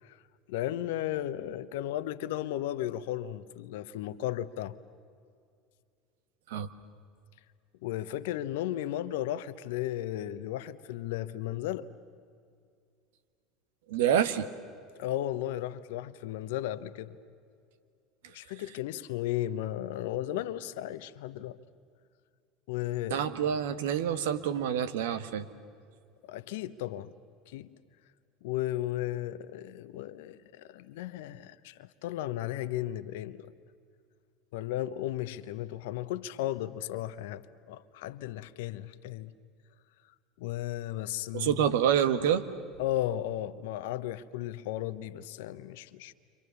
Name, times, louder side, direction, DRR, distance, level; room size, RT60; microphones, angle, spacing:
voice 1, 0.5-4.8 7.8-11.9 15.0-17.2 18.3-21.6 22.7-23.2 26.3-27.1 27.5-27.7 28.4-33.5 34.5-39.3 40.4-41.5 42.8-46.1, left 13 dB, 70° left, 1.0 m, -35 dB
voice 2, 13.9-14.5 23.1-25.5 41.3-42.4, right 9 dB, 70° right, 1.4 m, -27 dB
29.5 x 26.0 x 7.1 m
hypercardioid pair, 75°, 0 cm